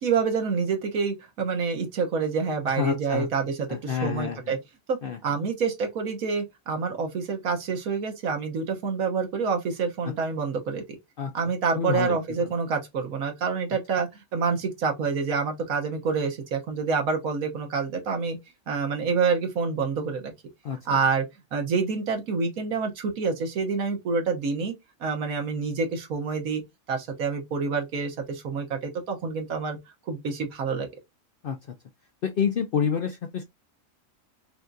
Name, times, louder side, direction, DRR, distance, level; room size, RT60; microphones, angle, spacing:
voice 1, 0.0-4.6 4.9-10.8 11.3-18.4 18.7-20.3 20.9-21.3 21.5-24.7 25.0-26.6 26.9-29.8 30.1-30.9, right 5 dB, 80° right, 1.5 m, -27 dB
voice 2, 2.7-3.3 3.7-4.6 5.0-5.2 11.2-11.3 11.8-12.2 20.6-21.0 31.4-31.6 32.2-33.4, left 7 dB, 65° left, 0.6 m, -28 dB
5.6 x 2.4 x 2.6 m
omnidirectional pair, 1.5 m